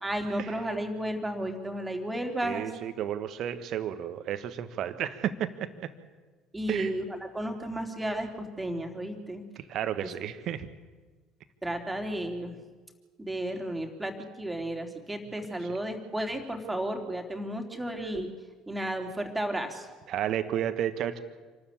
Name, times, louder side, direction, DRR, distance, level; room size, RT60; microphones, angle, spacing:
voice 1, 0.0-2.7 6.5-9.4 11.6-12.6 13.2-18.3 18.7-19.9, right 1 dB, 10° right, 4 dB, 3.5 m, -33 dB
voice 2, 2.4-5.9 6.7-6.9 9.5-10.7 15.7-15.8 20.1-21.2, right 10 dB, 50° right, 12 dB, 1.5 m, -32 dB
27.5 x 13.0 x 8.7 m, 1.4 s
figure-of-eight pair, 60°, 0 cm